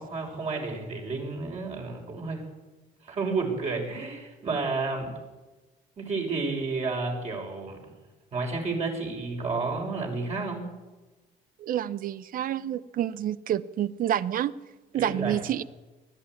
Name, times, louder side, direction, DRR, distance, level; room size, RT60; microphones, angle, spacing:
voice 1, 0.0-2.4 3.0-5.1 6.0-7.8 8.3-10.7 14.9-15.4, right 3 dB, 40° right, 1 dB, 6.5 m, -31 dB
voice 2, 11.6-14.5 14.9-15.6, right 11 dB, 55° right, 17 dB, 0.8 m, -28 dB
20.0 x 13.5 x 9.7 m, 1.2 s
cardioid pair, 110°, 17 cm